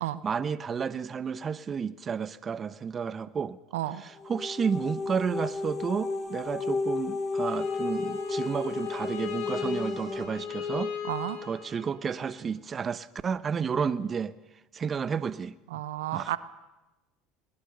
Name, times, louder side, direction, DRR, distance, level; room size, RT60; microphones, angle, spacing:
voice 1, 0.2-3.6 4.0-10.9 11.4-14.3 14.7-15.5 16.1-16.3, right 6 dB, 35° right, 0.8 m, -31 dB
voice 2, 3.7-4.0 11.0-11.4 15.7-16.4, right 14 dB, 85° right, 0.9 m, -32 dB
sound 1, 4.2-10.2, left 3 dB, 35° left, 4.3 m, -33 dB
Bowed string instrument, 7.4-12.3, left 7 dB, 85° left, 6.3 m, -37 dB
21.0 x 20.0 x 6.7 m
supercardioid pair, 90°, 0 cm